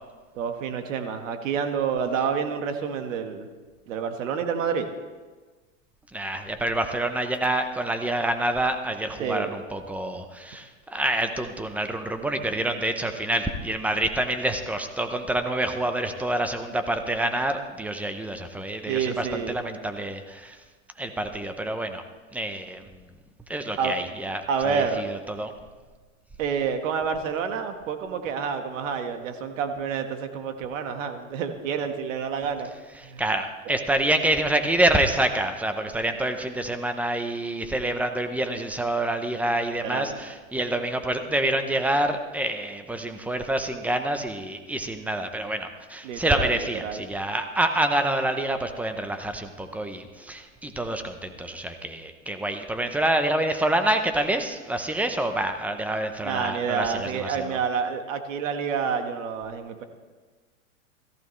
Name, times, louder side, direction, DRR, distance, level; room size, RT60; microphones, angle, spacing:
voice 1, 0.3-3.5 3.9-4.9 9.2-9.5 18.9-19.6 23.8-23.9 24.5-25.0 26.4-32.7 33.0-33.2 33.7-33.8 39.8-40.2 46.0-46.5 46.8-47.0 56.2-59.8, right 6 dB, 65° right, 7 dB, 1.6 m, -28 dB
voice 2, 6.1-20.6 21.0-22.0 22.3-22.9 23.5-25.5 33.2-57.6, right 1 dB, 5° right, 7 dB, 0.7 m, -27 dB
17.0 x 14.5 x 3.2 m, 1.4 s
hypercardioid pair, 125°, 41 cm